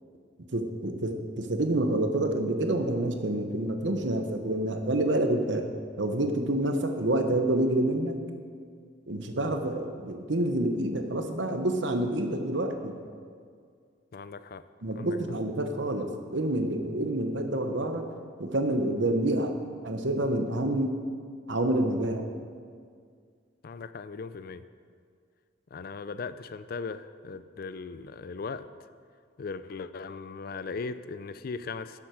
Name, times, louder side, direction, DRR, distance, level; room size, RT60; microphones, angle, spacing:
voice 1, 0.5-5.7 6.0-8.2 9.1-12.9 14.8-18.0 18.4-19.5 19.8-21.0 21.5-22.2, right 1 dB, 70° right, 5 dB, 1.0 m, -28 dB
voice 2, 14.1-14.7 15.0-15.2 23.6-24.6 25.7-28.7 29.4-32.0, left 4 dB, 50° left, 13 dB, 0.4 m, -38 dB
11.5 x 7.4 x 6.3 m, 2.1 s
head